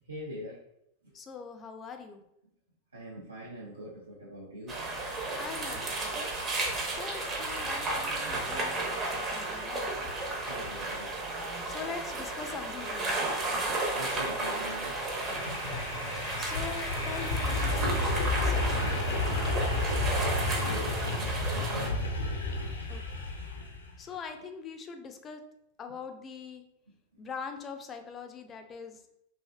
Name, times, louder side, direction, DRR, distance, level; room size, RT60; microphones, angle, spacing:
voice 1, 0.1-0.5 2.9-4.8 10.5-11.1 13.9-14.9 20.2-22.1, equal, 80° right, -5 dB, 0.6 m, -42 dB
voice 2, 1.1-2.2 5.3-6.2 6.6-9.9 11.4-13.2 16.4-19.3 22.9-23.2 24.0-25.4 25.8-26.6 27.2-29.2, left 5 dB, 25° left, 6 dB, 0.4 m, -43 dB
sound 1, 4.7-21.9, right 2 dB, 25° right, 0.7 m, -33 dB
sound 2, 14.8-23.9, left 2 dB, 75° left, 0.5 m, -31 dB
3.2 x 2.6 x 2.3 m, 0.80 s
figure-of-eight pair, 90°, 0 cm